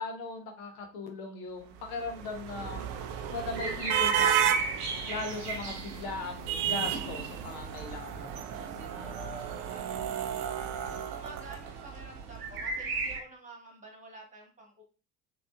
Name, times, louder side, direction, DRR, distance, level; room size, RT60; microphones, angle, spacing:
voice 1, 0.0-2.8 3.3-4.4 5.1-8.3, left 3 dB, 55° left, 4 dB, 0.8 m, -38 dB
sound 1, 1.8-12.1, right 9 dB, 45° right, 0.5 m, -33 dB
sound 2, 2.6-13.2, right 4 dB, 75° right, 0.8 m, -38 dB
voice 2, 8.3-10.2 10.9-14.8, right 1 dB, 15° right, 0 dB, 1.4 m, -49 dB
4.0 x 2.9 x 2.3 m, 0.37 s
figure-of-eight pair, 70°, 46 cm